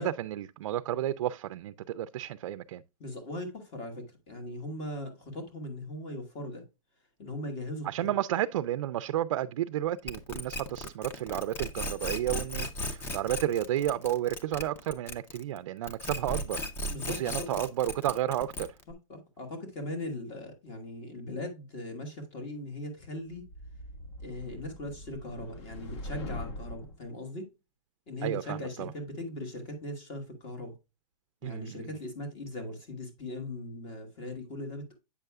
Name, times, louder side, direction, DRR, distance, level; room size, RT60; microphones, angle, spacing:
voice 1, 0.0-2.8 7.8-16.6 17.1-18.7 28.2-28.9 31.4-31.8, right 12 dB, 55° right, 0.4 m, -32 dB
voice 2, 3.0-6.6 7.2-8.1 16.9-17.6 18.9-23.4 24.2-27.4 28.1-30.7 31.4-35.0, left 1 dB, 30° left, 1.5 m, -39 dB
sound 1, 10.1-15.6 15.8-18.9, left 1 dB, 10° left, 0.6 m, -36 dB
sound 2, 23.3-27.0, left 1 dB, 50° left, 1.9 m, -42 dB
8.4 x 6.6 x 2.3 m
hypercardioid pair, 165°, 18 cm